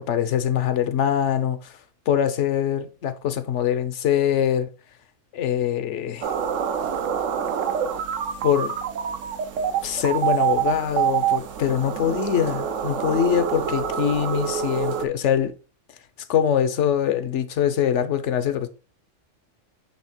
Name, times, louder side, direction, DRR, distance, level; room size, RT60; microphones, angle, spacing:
voice 1, 0.0-1.7 2.1-4.7 5.3-6.3 8.4-8.7 9.8-15.5 16.3-18.7, left 9 dB, 75° left, 1.0 m, -23 dB
sound 1, 6.2-15.1, right 8 dB, 85° right, 1.0 m, -26 dB
7.2 x 3.2 x 4.3 m
omnidirectional pair, 1.3 m